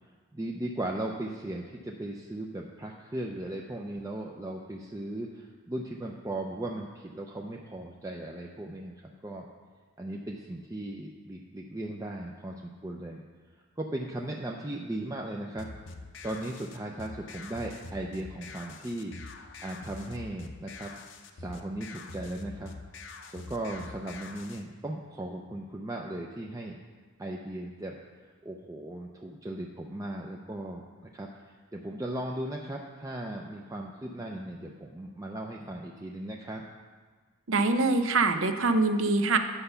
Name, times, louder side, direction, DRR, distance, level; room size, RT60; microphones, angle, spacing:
voice 1, 0.3-9.5 10.0-13.2 13.8-15.7 16.2-19.2 19.6-20.9 21.3-22.7 23.3-26.8 27.2-30.9 31.1-36.6, right 1 dB, 15° right, 0 dB, 0.5 m, -37 dB
sound 1, 15.6-24.6, left 3 dB, 55° left, 0.6 m, -45 dB
voice 2, 37.5-39.4, right 3 dB, 65° right, 8 dB, 0.7 m, -24 dB
10.0 x 5.5 x 6.8 m, 1.5 s
head